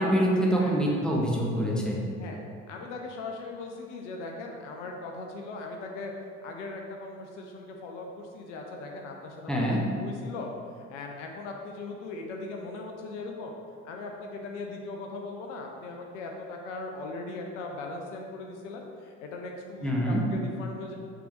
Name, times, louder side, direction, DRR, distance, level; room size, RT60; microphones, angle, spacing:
voice 1, 0.0-2.0 9.5-9.8 19.8-20.2, equal, ahead, -3 dB, 1.3 m, -25 dB
voice 2, 0.6-1.0 2.2-2.4 2.7-6.1 6.4-9.6 10.0-13.6 13.8-21.0, left 3 dB, 70° left, 1 dB, 0.7 m, -39 dB
6.9 x 3.7 x 4.6 m, 2.2 s
figure-of-eight pair, 55°, 38 cm